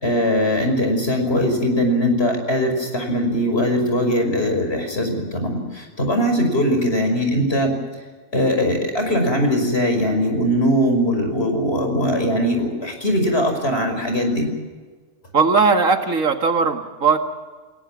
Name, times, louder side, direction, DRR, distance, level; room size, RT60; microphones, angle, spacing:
voice 1, 0.0-7.8 8.3-14.5, equal, 50° left, 4 dB, 5.9 m, -20 dB
voice 2, 15.3-17.2, right 4 dB, 80° right, 5 dB, 2.4 m, -18 dB
29.5 x 17.0 x 7.4 m, 1.4 s
omnidirectional pair, 1.4 m